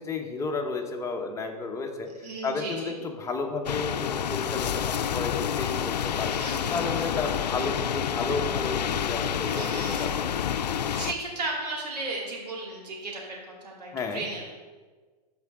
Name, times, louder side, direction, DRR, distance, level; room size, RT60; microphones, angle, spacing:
voice 1, 0.0-6.4 6.7-10.3 13.9-14.3, left 4 dB, 15° left, 2 dB, 1.0 m, -32 dB
voice 2, 2.2-3.0 6.3-6.9 9.4-10.1 10.9-14.5, right 2 dB, 80° right, -3 dB, 2.6 m, -35 dB
sound 1, 3.7-11.1, left 9 dB, 90° left, 0.5 m, -28 dB
13.5 x 4.8 x 3.6 m, 1.4 s
hypercardioid pair, 125°, 21 cm